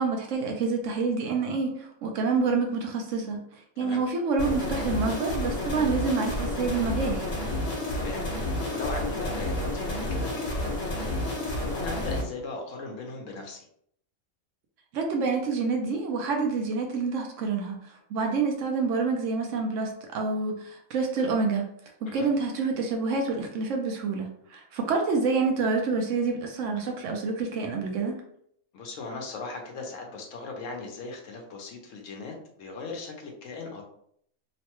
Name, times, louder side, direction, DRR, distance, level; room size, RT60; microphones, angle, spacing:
voice 1, 0.0-3.4 3.8-7.3 14.9-21.7 22.0-28.1, right 4 dB, 70° right, 2 dB, 0.9 m, -27 dB
sound 1, 4.4-12.2, left 1 dB, 50° left, 1.2 m, -30 dB
voice 2, 8.0-11.3 11.7-13.7 22.1-22.3 28.7-33.8, left 3 dB, 70° left, 1 dB, 1.0 m, -38 dB
3.1 x 2.1 x 2.9 m, 0.68 s
omnidirectional pair, 1.4 m